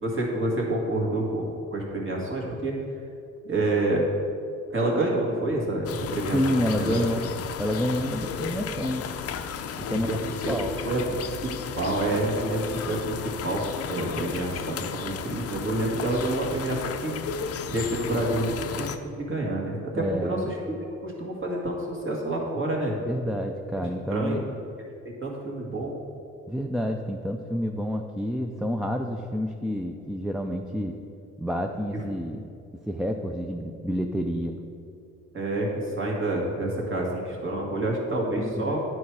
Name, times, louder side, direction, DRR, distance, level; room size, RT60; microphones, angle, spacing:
voice 1, 0.0-2.7 3.4-4.0 4.7-7.1 9.9-10.6 10.8-11.2 11.8-13.2 13.4-13.6 13.9-17.1 17.7-20.8 21.0-23.0 23.8-24.4 25.0-26.0 31.9-32.0 35.3-38.8, right 2 dB, 40° right, -2 dB, 1.9 m, -28 dB
sound 1, 5.8-19.0, left 7 dB, 50° left, 0.5 m, -34 dB
voice 2, 6.3-7.2 7.6-9.1 9.8-10.2 10.5-10.8 20.0-20.5 23.0-24.5 26.5-31.0 31.4-32.5 32.9-34.6 38.4-38.7, equal, ahead, 3 dB, 0.4 m, -29 dB
9.7 x 4.8 x 4.7 m, 2.6 s
cardioid pair, 90°, 30 cm